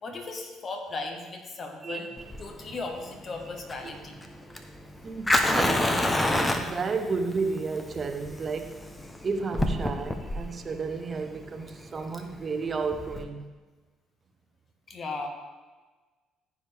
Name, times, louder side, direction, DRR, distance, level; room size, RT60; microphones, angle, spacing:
voice 1, 0.0-2.1 2.4-4.2 14.9-15.3, left 3 dB, 45° left, 3 dB, 1.6 m, -36 dB
voice 2, 1.8-2.2 5.0-8.9 9.2-13.5, right 4 dB, 40° right, 7 dB, 1.0 m, -32 dB
Fire, 2.2-13.2, left 1 dB, 20° left, 1.0 m, -29 dB
14.5 x 5.1 x 3.5 m, 1.3 s
hypercardioid pair, 60°, 0 cm